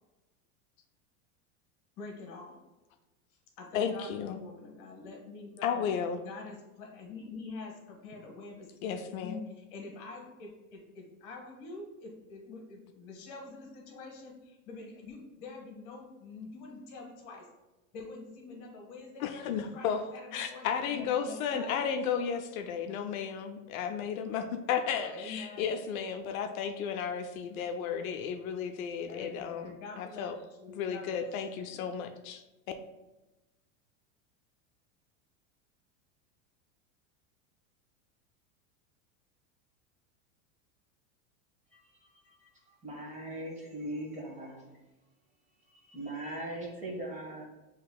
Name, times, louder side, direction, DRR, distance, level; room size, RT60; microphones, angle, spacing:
voice 1, 2.0-2.6 3.6-5.9 6.2-17.5 17.9-22.3 25.0-25.7 29.1-31.9, left 3 dB, 45° left, 1 dB, 1.1 m, -46 dB
voice 2, 3.7-4.4 5.6-6.2 8.8-9.5 19.2-20.0 20.3-29.7 30.0-30.4 30.8-32.4, left 7 dB, 75° left, 6 dB, 0.5 m, -33 dB
voice 3, 42.8-44.7 45.9-47.4, right 1 dB, 20° right, -2 dB, 1.0 m, -39 dB
6.5 x 3.0 x 2.2 m, 1.1 s
supercardioid pair, 135°, 41 cm